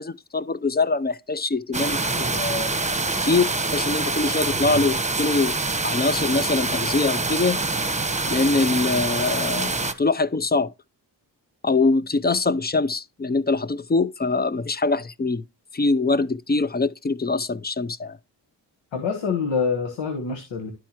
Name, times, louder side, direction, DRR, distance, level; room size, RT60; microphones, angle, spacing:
voice 1, 0.0-2.8 3.2-5.6 5.8-7.6 8.3-10.7 11.6-15.4 15.7-18.2, left 3 dB, 20° left, 0.5 m, -23 dB
sound 1, 1.7-9.9, right 3 dB, 15° right, 1.0 m, -25 dB
voice 2, 18.9-20.7, left 5 dB, 80° left, 1.5 m, -26 dB
11.5 x 4.6 x 2.9 m
supercardioid pair, 45°, 44 cm